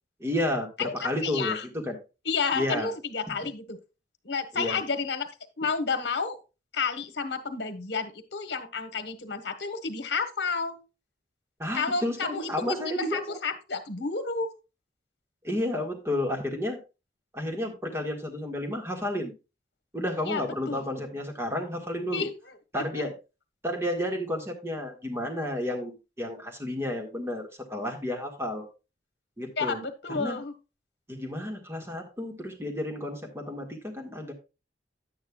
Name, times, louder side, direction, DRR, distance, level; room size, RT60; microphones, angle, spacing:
voice 1, 0.2-2.0 2.5-2.9 4.5-4.8 11.6-13.3 15.4-16.8 17.3-19.3 19.9-22.3 22.7-23.1 23.6-28.7 29.4-29.8 30.1-30.4 31.1-34.3, left 1 dB, 15° right, 2 dB, 1.8 m, -31 dB
voice 2, 0.8-1.6 2.2-3.8 4.2-5.3 5.6-6.4 6.7-10.8 11.7-14.5 20.3-20.8 22.1-22.3 22.7-22.8 29.6-30.5, left 5 dB, 65° left, 9 dB, 1.2 m, -31 dB
10.5 x 8.7 x 2.3 m, 0.28 s
head